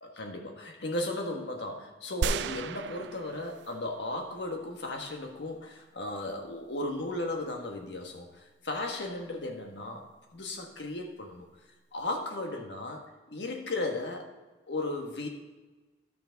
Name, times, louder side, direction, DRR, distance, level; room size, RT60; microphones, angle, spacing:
voice 1, 0.0-8.3 8.6-11.5 11.9-14.3 14.7-15.3, left 2 dB, 90° left, 2 dB, 1.5 m, -35 dB
sound 1, 2.2-4.0 4.5-4.6, right 5 dB, 80° right, 0.3 m, -34 dB
11.5 x 6.8 x 4.0 m, 1.2 s
head